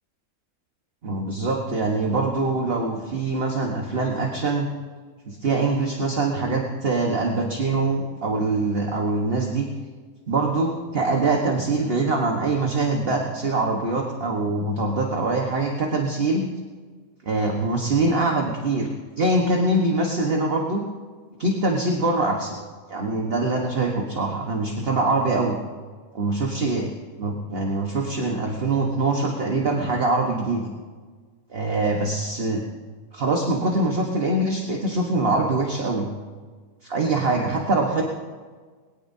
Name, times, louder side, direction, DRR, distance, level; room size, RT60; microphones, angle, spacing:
voice 1, 1.0-4.7 5.3-9.7 10.3-16.5 17.2-18.9 19.2-20.8 21.4-22.6 22.9-25.5 26.1-26.9 27.2-30.6 31.5-32.6 33.1-36.1 36.8-38.0, right 2 dB, 40° right, 0 dB, 1.5 m, -23 dB
21.5 x 18.0 x 2.8 m, 1.5 s
omnidirectional pair, 1.6 m